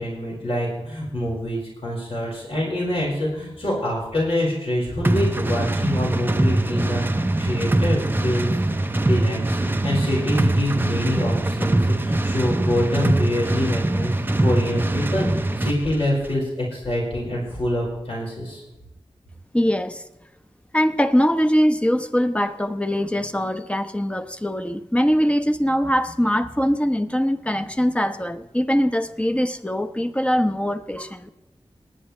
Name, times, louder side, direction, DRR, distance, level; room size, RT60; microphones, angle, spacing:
voice 1, 0.0-14.1 14.4-18.6, left 1 dB, 75° left, -5 dB, 5.4 m, -26 dB
sound 1, 5.0-15.8, right 2 dB, 20° right, 0.6 m, -22 dB
voice 2, 19.5-20.0 20.7-31.3, equal, 10° left, 8 dB, 1.0 m, -22 dB
19.5 x 10.5 x 3.3 m, 0.99 s
wide cardioid pair, 60°, 10 cm